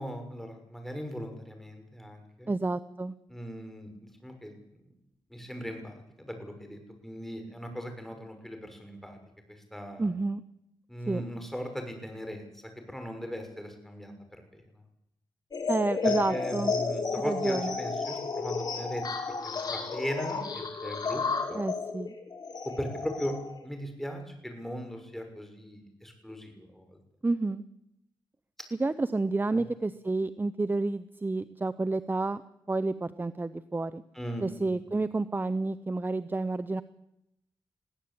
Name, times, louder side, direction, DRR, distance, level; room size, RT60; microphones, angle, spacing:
voice 1, 0.0-2.5 3.3-4.8 5.3-9.2 9.5-10.1 10.9-12.6 12.9-14.6 16.0-19.1 19.4-21.2 21.5-21.7 22.6-26.9 29.5-29.6 34.1-35.0, equal, 5° left, 5 dB, 6.4 m, -38 dB
voice 2, 2.5-3.1 10.0-10.4 11.1-11.2 15.7-16.7 17.2-17.7 21.5-22.1 27.2-27.6 28.7-32.4 32.7-34.0 34.4-36.8, right 3 dB, 25° right, 14 dB, 0.8 m, -30 dB
sound 1, 15.5-23.6, left 4 dB, 50° left, 5.7 m, -32 dB
22.0 x 16.0 x 8.7 m, 0.84 s
cardioid pair, 70°, 9 cm